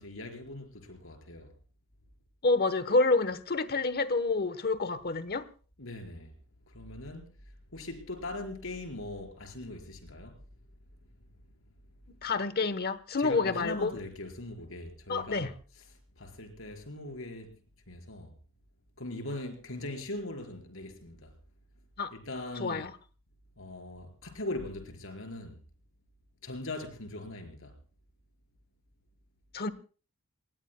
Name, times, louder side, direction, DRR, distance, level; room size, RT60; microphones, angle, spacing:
voice 1, 0.0-1.5 5.8-6.3 6.7-7.3 7.7-10.3 13.2-15.5 16.2-17.5 17.9-18.3 19.0-21.3 22.1-22.8 23.6-25.6 26.4-27.7, left 2 dB, 70° left, 4.8 m, -40 dB
voice 2, 2.4-5.4 12.1-13.9 15.1-15.5 22.0-22.1 22.6-22.9 29.5-29.7, left 3 dB, 45° left, 1.1 m, -28 dB
29.0 x 20.0 x 2.2 m
head